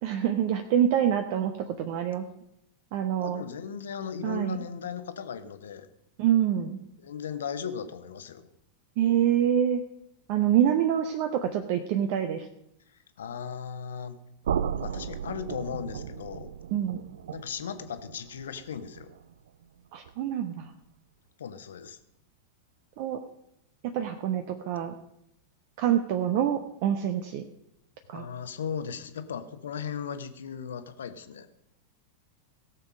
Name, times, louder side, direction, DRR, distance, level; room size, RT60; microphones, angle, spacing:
voice 1, 0.0-2.2 2.9-3.4 4.2-4.6 6.2-6.8 9.0-9.8 10.3-12.5 16.7-17.0 19.9-20.7 23.0-23.2 23.9-24.9 25.8-27.4 28.1-28.2, right 10 dB, 45° right, 7 dB, 0.8 m, -26 dB
voice 2, 3.2-5.9 7.0-8.5 13.2-14.2 14.8-16.5 17.3-19.1 21.4-22.0 28.1-31.5, left 7 dB, 65° left, 11 dB, 1.0 m, -37 dB
sound 1, 14.4-20.3, right 8 dB, 65° right, 0.4 m, -36 dB
17.0 x 7.0 x 5.1 m, 0.78 s
figure-of-eight pair, 90°, 0 cm